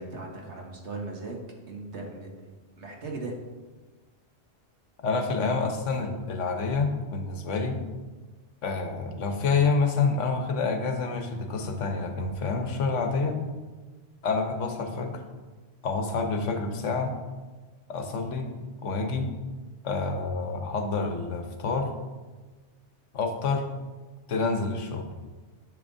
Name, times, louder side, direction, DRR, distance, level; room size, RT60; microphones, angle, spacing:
voice 1, 0.0-1.4 1.7-2.3 2.8-3.3, right 3 dB, 70° right, 0 dB, 1.6 m, -37 dB
voice 2, 5.0-7.8 8.6-13.4 14.2-15.2 15.8-17.1 17.9-18.5 18.8-19.3 19.8-21.9 23.1-23.6 24.3-25.1, left 4 dB, 80° left, 5 dB, 1.3 m, -28 dB
10.5 x 6.5 x 2.7 m, 1.3 s
omnidirectional pair, 1.2 m